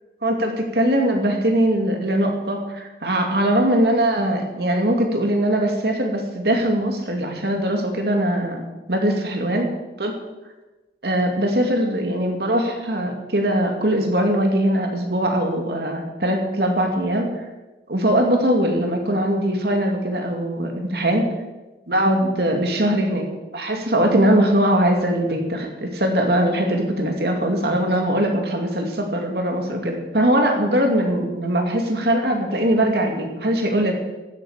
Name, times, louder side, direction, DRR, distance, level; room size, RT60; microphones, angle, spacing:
voice 1, 0.2-8.6 8.9-9.7 10.0-10.1 11.0-17.4 17.9-21.3 21.9-23.2 23.5-33.9, right 1 dB, 60° right, 3 dB, 2.4 m, -21 dB
15.0 x 11.5 x 5.0 m, 1.1 s
head